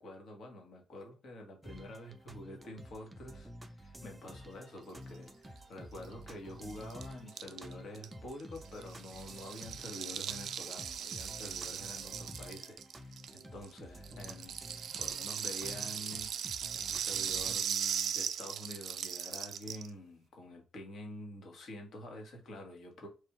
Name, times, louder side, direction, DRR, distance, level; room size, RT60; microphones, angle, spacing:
voice 1, 0.0-23.1, left 1 dB, 65° left, 1.5 m, -48 dB
sound 1, 1.6-17.6, equal, 15° right, 0.5 m, -50 dB
Rattle (instrument), 6.0-6.1 6.3-6.4 6.6-13.7 14.0-19.9, right 8 dB, 65° right, 0.4 m, -38 dB
3.3 x 2.6 x 4.5 m
cardioid pair, 90°, 0 cm